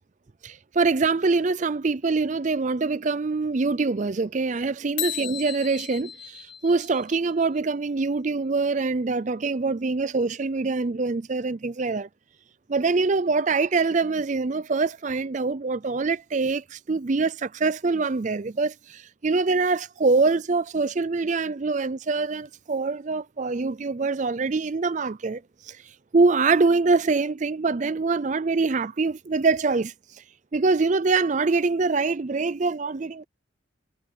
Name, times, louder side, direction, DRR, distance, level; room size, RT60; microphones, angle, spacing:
voice 1, 0.4-12.1 12.7-25.8 26.1-29.9 30.5-33.2, right 4 dB, 35° right, 0.4 m, -24 dB
sound 1, 5.0-7.6, left 12 dB, 65° left, 3.3 m, -35 dB
head